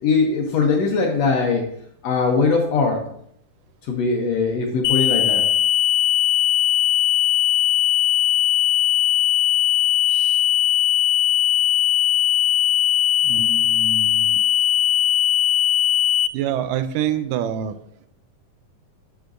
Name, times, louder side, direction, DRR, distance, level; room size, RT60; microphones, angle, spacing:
voice 1, 0.0-1.7 2.0-3.1 3.8-5.5 10.1-10.4, left 4 dB, 70° left, 2 dB, 1.7 m, -21 dB
sound 1, 4.8-16.3, left 11 dB, 85° left, 2.1 m, -19 dB
voice 2, 13.2-14.4 16.3-17.8, right 9 dB, 85° right, 10 dB, 2.2 m, -26 dB
8.7 x 8.1 x 2.5 m, 0.69 s
omnidirectional pair, 3.8 m